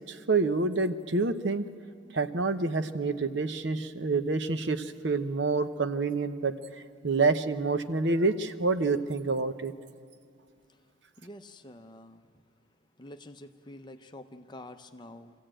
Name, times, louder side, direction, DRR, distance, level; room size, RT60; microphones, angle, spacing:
voice 1, 0.1-1.7 2.1-6.5 7.0-9.7, right 3 dB, 60° right, 10 dB, 0.8 m, -27 dB
voice 2, 11.2-12.2 13.0-15.3, left 1 dB, 20° left, 8 dB, 0.7 m, -47 dB
24.0 x 15.0 x 8.9 m, 2.3 s
head